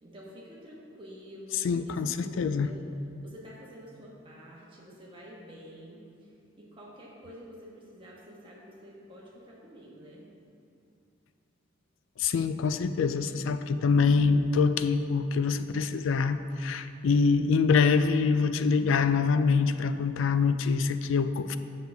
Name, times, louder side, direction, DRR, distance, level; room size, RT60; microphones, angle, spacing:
voice 1, 0.0-1.9 2.2-2.8 3.2-6.0 6.6-10.3, equal, 25° right, -4 dB, 1.2 m, -48 dB
voice 2, 1.5-2.7 12.2-21.6, left 5 dB, 70° left, 10 dB, 0.3 m, -25 dB
7.9 x 6.8 x 3.4 m, 2.5 s
head